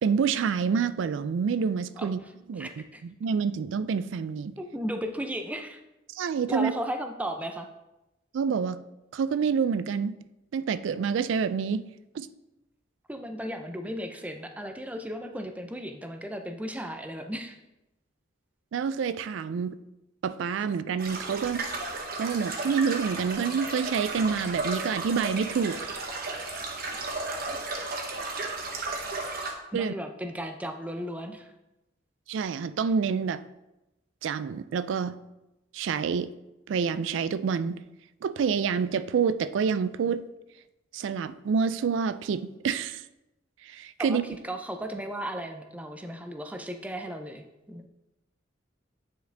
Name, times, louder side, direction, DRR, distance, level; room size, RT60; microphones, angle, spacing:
voice 1, 0.0-2.2 2.5-4.5 6.1-6.7 8.3-8.8 9.1-10.1 10.5-11.8 12.1-12.3 18.7-19.8 20.2-21.6 22.2-25.9 29.7-29.9 32.3-33.4 34.2-35.2 35.7-36.3 36.7-37.8 38.2-40.2 40.9-43.0 43.6-44.2, right 6 dB, 70° right, 14 dB, 0.3 m, -27 dB
voice 2, 2.6-3.0 4.6-5.8 6.5-7.7 13.1-17.6 27.5-27.6 29.7-31.5 44.0-44.2 44.4-47.9, equal, 5° right, 6 dB, 0.5 m, -35 dB
sound 1, 21.0-29.5, right 3 dB, 50° right, 1.0 m, -34 dB
9.1 x 4.7 x 3.4 m, 0.95 s
head